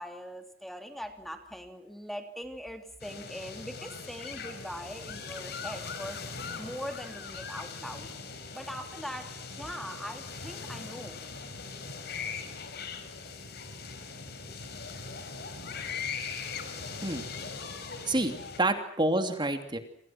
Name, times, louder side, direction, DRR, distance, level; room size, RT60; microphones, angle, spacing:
voice 1, 0.0-6.2 6.6-8.1 8.5-11.2, equal, ahead, 6 dB, 2.9 m, -41 dB
sound 1, 3.0-18.6, left 5 dB, 55° left, 5.6 m, -40 dB
voice 2, 18.1-19.8, right 2 dB, 25° right, 7 dB, 2.9 m, -28 dB
29.0 x 26.5 x 6.1 m, 0.65 s
head